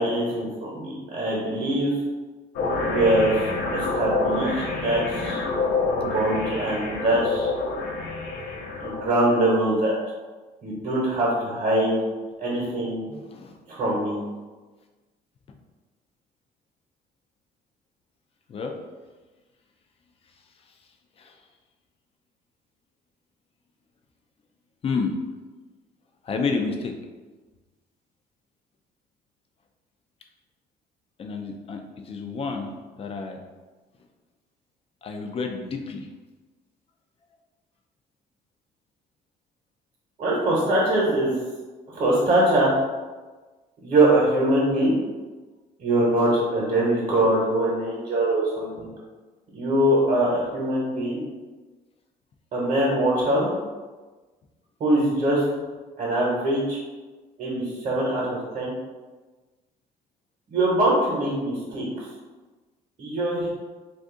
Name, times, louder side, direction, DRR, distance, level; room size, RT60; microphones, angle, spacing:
voice 1, 0.0-1.9 2.8-5.4 6.0-7.5 8.8-10.0 10.6-12.0 12.4-13.0 13.7-14.2 40.2-41.3 41.9-42.7 43.8-45.0 45.8-48.9 49.5-51.2 52.5-53.5 54.8-55.4 56.0-56.8 57.4-58.7 60.5-61.9 63.0-63.5, right 1 dB, 45° right, -6 dB, 1.0 m, -23 dB
sound 1, 2.5-9.1, left 3 dB, 80° left, 0.7 m, -27 dB
voice 2, 13.1-13.6 18.5-18.8 21.2-21.4 24.8-25.2 26.2-26.9 31.2-33.4 35.0-36.1, left 4 dB, 35° left, 4 dB, 0.4 m, -30 dB
2.6 x 2.4 x 3.7 m, 1.3 s
cardioid pair, 110°, 17 cm